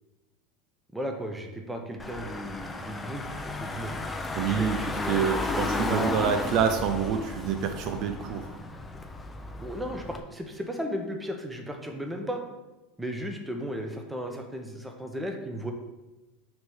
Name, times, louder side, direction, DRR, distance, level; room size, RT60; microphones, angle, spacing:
voice 1, 0.9-3.2 3.6-3.9 4.5-6.4 9.6-12.4 13.0-15.7, equal, 5° right, 3 dB, 0.9 m, -35 dB
Car / Engine, 2.0-10.2, left 2 dB, 15° left, 0.6 m, -34 dB
voice 2, 4.4-8.5, right 7 dB, 55° right, 7 dB, 0.5 m, -27 dB
6.0 x 3.2 x 5.5 m, 1.1 s
hypercardioid pair, 100°, 0 cm